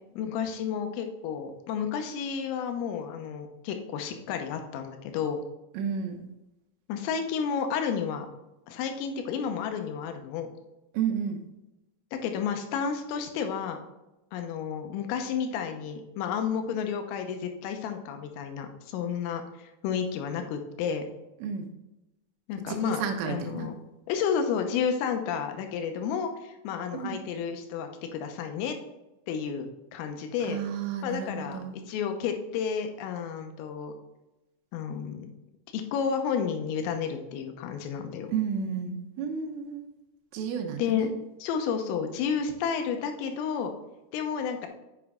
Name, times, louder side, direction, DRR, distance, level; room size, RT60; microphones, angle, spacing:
voice 1, 0.1-5.4 6.9-8.3 8.7-10.5 12.1-13.8 14.3-21.0 22.5-23.0 23.3-23.7 24.1-28.8 29.3-30.6 31.0-31.6 31.9-33.9 34.7-35.3 35.7-38.3 40.8-41.1 41.4-43.7 44.1-44.7, left 7 dB, 80° left, 5 dB, 3.5 m, -31 dB
voice 2, 5.8-6.2 10.9-11.4 21.4-21.7 22.7-23.7 26.9-27.2 30.5-31.8 38.3-39.9 40.3-41.1, right 7 dB, 80° right, 4 dB, 3.4 m, -32 dB
8.1 x 6.5 x 3.6 m, 0.98 s
omnidirectional pair, 6.0 m